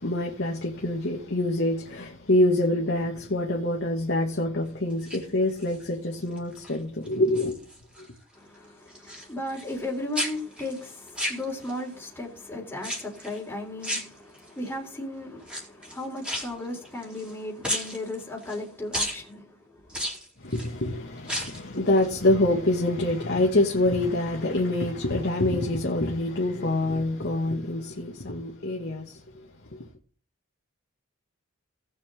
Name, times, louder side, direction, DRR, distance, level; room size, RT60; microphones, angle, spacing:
voice 1, 0.0-7.6 8.0-8.1 20.4-29.8, left 1 dB, 55° left, 2.1 m, -26 dB
sound 1, 4.9-5.9 6.4-6.8 7.1-8.1 8.3-9.9 10.1-11.9 12.8-13.4 13.8-14.7 15.4-17.3 17.6-18.6 18.9-19.2 19.9-20.7 21.2-21.7 22.0-22.1, equal, 5° right, 3.9 m, -34 dB
voice 2, 8.3-19.5 19.8-19.9, left 1 dB, 10° left, 3.7 m, -36 dB
18.5 x 7.2 x 3.8 m
head